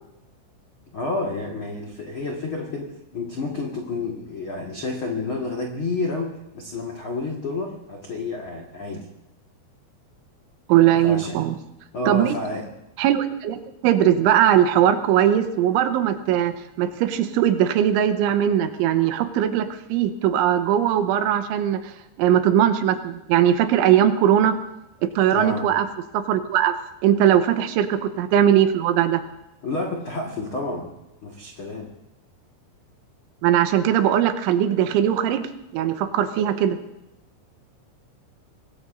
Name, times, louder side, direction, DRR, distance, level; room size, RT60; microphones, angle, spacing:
voice 1, 0.9-9.1 11.0-11.5 11.9-12.7 25.3-25.7 29.6-30.9 31.2-31.9, left 2 dB, 85° left, -1 dB, 1.1 m, -30 dB
voice 2, 10.7-11.5 12.1-12.4 13.0-13.6 13.8-21.9 22.2-24.5 25.0-25.9 26.1-26.8 27.0-29.2 33.4-36.8, right 10 dB, 90° right, 9 dB, 3.3 m, -20 dB
25.5 x 20.0 x 2.6 m, 0.93 s
omnidirectional pair, 5.5 m